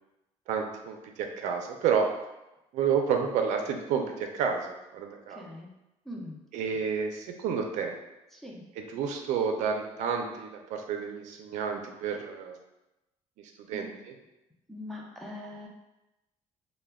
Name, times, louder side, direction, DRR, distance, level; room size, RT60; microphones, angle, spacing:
voice 1, 0.5-2.1 2.7-5.4 6.5-8.0 8.8-12.6 13.4-14.1, right 6 dB, 75° right, 3 dB, 0.4 m, -30 dB
voice 2, 5.3-5.7 6.1-6.4 8.3-8.6 13.7-14.0 14.7-15.7, left 1 dB, ahead, -3 dB, 0.4 m, -42 dB
2.2 x 2.1 x 3.4 m, 0.95 s
cardioid pair, 130°, 12 cm